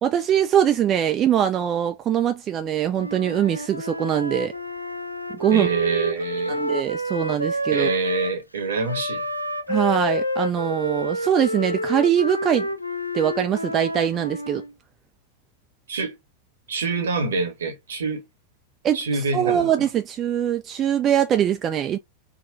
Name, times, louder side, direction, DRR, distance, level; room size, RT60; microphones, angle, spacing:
voice 1, 0.0-4.5 5.4-5.7 6.5-7.9 9.7-12.7 13.1-14.6 18.8-22.0, right 10 dB, 30° right, 0.3 m, -22 dB
Wind instrument woodwind instrument, 2.9-8.4 8.8-14.7, equal, 90° left, 0.3 m, -29 dB
voice 2, 5.5-6.6 7.7-9.2 15.9-16.2 16.7-18.2 18.9-19.7, right 4 dB, 65° right, 0.9 m, -26 dB
3.6 x 2.2 x 2.6 m
figure-of-eight pair, 90°, 0 cm